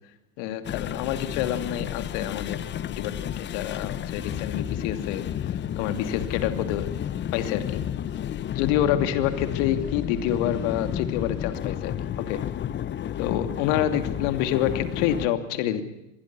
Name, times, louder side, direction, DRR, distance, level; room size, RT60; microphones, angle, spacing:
voice 1, 0.4-6.9 7.3-8.2 8.5-11.9 12.3-12.4 13.2-15.8, left 11 dB, 60° left, 9 dB, 2.8 m, -28 dB
sound 1, 0.6-15.3, left 10 dB, 25° left, 0.9 m, -31 dB
25.5 x 21.5 x 6.3 m, 0.91 s
hypercardioid pair, 95°, 42 cm